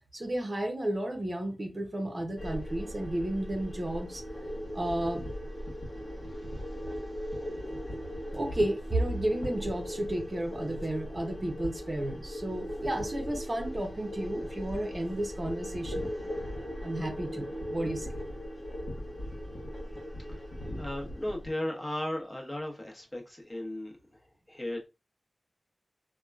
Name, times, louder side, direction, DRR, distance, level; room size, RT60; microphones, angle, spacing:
voice 1, 0.0-4.2 4.7-5.2 8.3-16.1 16.8-18.2, right 1 dB, 40° right, 0.7 m, -32 dB
sound 1, 2.4-21.5, equal, 60° left, 1.2 m, -38 dB
voice 2, 6.3-6.6 7.3-7.5 20.3-20.4 20.8-24.2 24.5-24.9, left 1 dB, 30° left, 0.9 m, -36 dB
2.9 x 2.2 x 2.3 m
cardioid pair, 50°, 0 cm